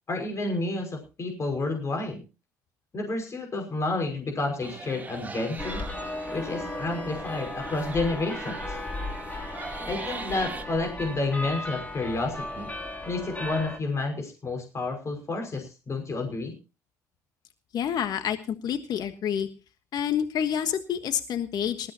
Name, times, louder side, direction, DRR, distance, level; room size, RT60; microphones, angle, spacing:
voice 1, 0.1-2.2 2.9-5.8 6.3-8.8 9.9-12.7 13.1-16.5, left 3 dB, 35° left, 3 dB, 5.8 m, -30 dB
sound 1, 4.6-10.6, right 3 dB, 20° right, 3.0 m, -41 dB
sound 2, 5.6-13.8, left 1 dB, 20° left, 3.2 m, -36 dB
voice 2, 17.7-19.5 19.9-21.9, left 9 dB, 55° left, 9 dB, 1.4 m, -28 dB
19.5 x 14.5 x 2.9 m, 0.32 s
hypercardioid pair, 60°, 8 cm